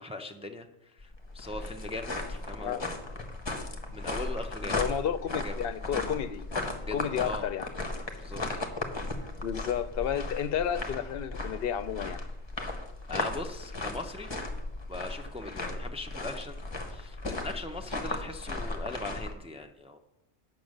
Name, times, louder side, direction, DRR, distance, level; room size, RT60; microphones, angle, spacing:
voice 1, 0.0-3.3 3.9-4.8 5.4-5.6 6.8-7.5 8.2-8.4 13.1-14.4 14.9-20.0, left 2 dB, 10° right, 0.4 m, -40 dB
sound 1, 1.0-19.3, left 2 dB, 25° left, 1.0 m, -36 dB
voice 2, 4.8-6.4 6.9-7.7 9.4-12.2, left 9 dB, 65° left, 0.7 m, -31 dB
8.7 x 6.0 x 6.4 m
omnidirectional pair, 1.2 m